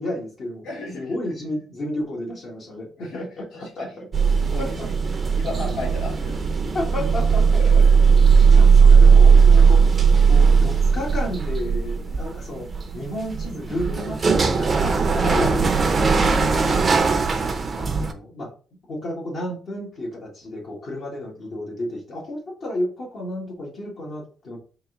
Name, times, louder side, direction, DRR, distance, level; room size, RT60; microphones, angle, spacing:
voice 1, 0.0-0.7 1.0-4.1 4.6-4.9 6.7-7.5 7.7-7.9 8.5-9.8 10.3-12.7 12.9-15.6 16.1-18.5 18.9-24.6, left 1 dB, 55° left, -3 dB, 1.5 m, -32 dB
voice 2, 0.6-1.1 3.0-3.2 3.5-3.9 4.4-4.7 5.4-6.6 12.1-12.2 15.2-15.5, left 2 dB, 85° left, -5 dB, 2.1 m, -34 dB
sound 1, 4.1-18.1, right 5 dB, 35° right, 0.6 m, -17 dB
3.9 x 2.6 x 3.7 m, 0.38 s
cardioid pair, 90°, 0 cm